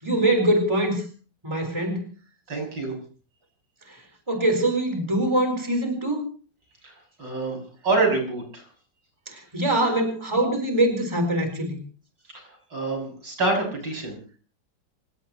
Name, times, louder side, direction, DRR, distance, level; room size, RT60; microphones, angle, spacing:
voice 1, 0.0-1.0 1.4-2.0 3.9-4.0 4.3-6.3 9.3-11.8, right 1 dB, 15° right, 5 dB, 4.2 m, -23 dB
voice 2, 2.5-3.0 6.8-8.7 12.3-14.2, right 3 dB, 80° right, 2 dB, 7.2 m, -27 dB
28.5 x 16.5 x 3.0 m, 0.40 s
omnidirectional pair, 1.9 m